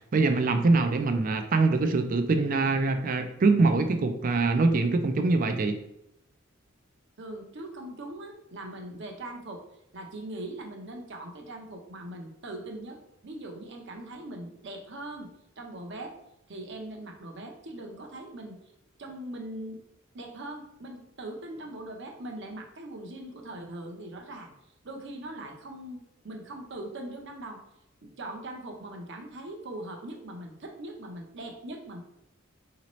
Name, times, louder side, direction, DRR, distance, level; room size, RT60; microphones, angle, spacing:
voice 1, 0.1-5.7, right 3 dB, 40° right, 7 dB, 0.4 m, -24 dB
voice 2, 7.2-9.6 9.9-15.3 15.6-16.2 16.5-18.6 19.0-19.8 20.1-24.5 24.8-27.6 28.0-32.0, right 1 dB, 60° right, 2 dB, 0.8 m, -41 dB
5.0 x 2.8 x 3.0 m, 0.79 s
head